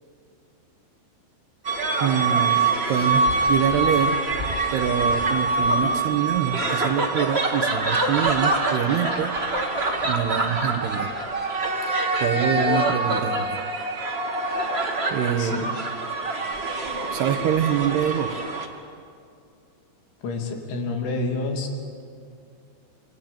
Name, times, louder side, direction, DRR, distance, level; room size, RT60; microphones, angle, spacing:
sound 1, 1.6-18.7, right 2 dB, 45° right, 0.8 m, -25 dB
voice 1, 2.0-2.6 2.9-4.2 4.7-9.7 10.0-11.1 11.9-13.6 15.1-15.7 17.1-18.4, right 9 dB, 70° right, 6 dB, 2.8 m, -25 dB
voice 2, 20.2-21.7, left 3 dB, 80° left, 2 dB, 5.3 m, -28 dB
29.5 x 22.5 x 8.8 m, 2.4 s
omnidirectional pair, 5.4 m